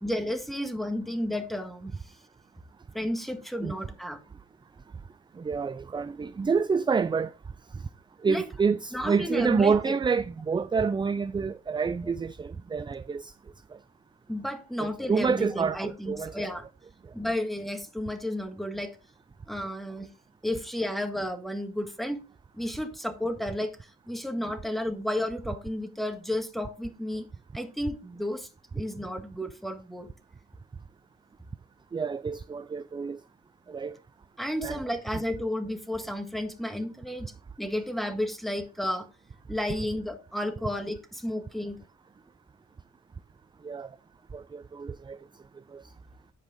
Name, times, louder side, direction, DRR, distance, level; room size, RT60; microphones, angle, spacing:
voice 1, 0.0-2.2 2.9-4.2 8.3-8.4 8.9-10.0 14.3-16.6 17.1-19.0 19.5-20.1 20.4-22.2 22.5-27.3 27.5-28.5 28.7-30.1 34.4-37.3 37.6-39.1 39.5-41.8, left 1 dB, ahead, 1.7 m, -32 dB
voice 2, 5.4-7.3 8.2-13.3 14.8-16.5 31.9-33.2 33.7-33.9 34.6-34.8 43.6-43.9 44.3-45.2 45.7-45.8, right 5 dB, 15° right, 0.4 m, -28 dB
10.5 x 4.9 x 3.8 m
cardioid pair, 90°, 30 cm